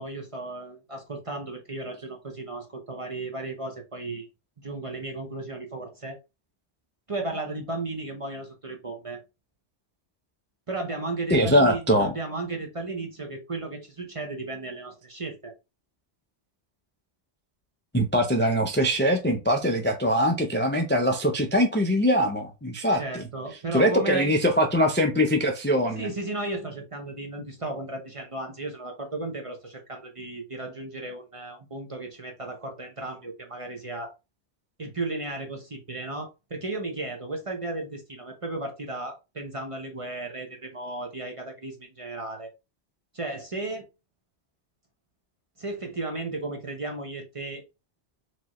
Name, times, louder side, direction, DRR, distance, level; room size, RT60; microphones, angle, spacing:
voice 1, 0.0-4.3 4.6-6.2 7.1-9.2 10.7-15.5 22.9-24.3 25.9-34.1 34.8-42.5 43.1-43.9 45.6-47.6, right 2 dB, 35° right, 0.7 m, -34 dB
voice 2, 11.3-12.1 17.9-23.0 23.7-26.1, equal, 15° left, 0.4 m, -22 dB
4.5 x 2.9 x 2.9 m
omnidirectional pair, 1.2 m